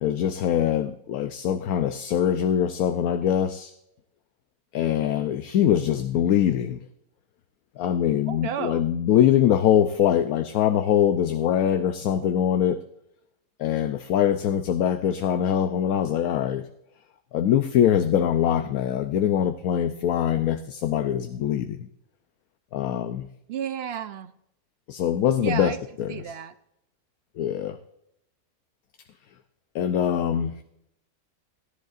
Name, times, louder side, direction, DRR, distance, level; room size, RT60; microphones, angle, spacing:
voice 1, 0.0-3.7 4.7-6.8 7.8-12.8 13.6-16.6 17.3-21.9 22.7-23.3 24.9-26.3 27.4-27.8 29.7-30.5, left 10 dB, 75° left, 8 dB, 1.0 m, -23 dB
voice 2, 8.3-8.9 12.2-12.3 23.5-24.3 25.4-25.8 26.1-26.5, right 8 dB, 65° right, 11 dB, 0.6 m, -32 dB
18.0 x 10.5 x 2.5 m, 0.78 s
omnidirectional pair, 1.5 m